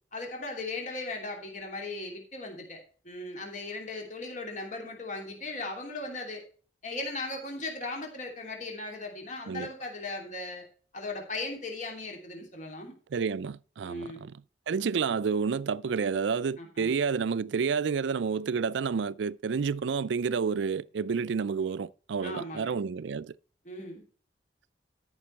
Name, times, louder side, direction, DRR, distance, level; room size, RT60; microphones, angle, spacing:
voice 1, 0.1-6.4 6.8-10.7 10.9-12.9 13.8-14.2 16.6-16.9 22.2-22.8 23.6-24.0, left 2 dB, 40° left, 2.9 m, -38 dB
voice 2, 13.1-23.3, right 5 dB, 75° right, 0.4 m, -30 dB
13.5 x 6.1 x 4.5 m
head